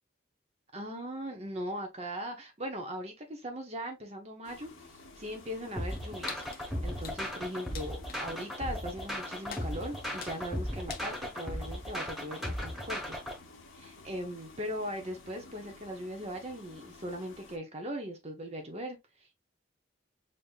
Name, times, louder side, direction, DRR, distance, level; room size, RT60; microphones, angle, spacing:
voice 1, 0.7-13.2 13.7-19.3, equal, 30° right, 0.7 m, -39 dB
sound 1, 4.4-17.6, left 3 dB, 80° left, 0.8 m, -53 dB
sound 2, 5.8-13.4, left 1 dB, ahead, 1.0 m, -36 dB
sound 3, 5.9-11.2, left 6 dB, 45° left, 0.7 m, -49 dB
5.4 x 2.7 x 2.4 m
head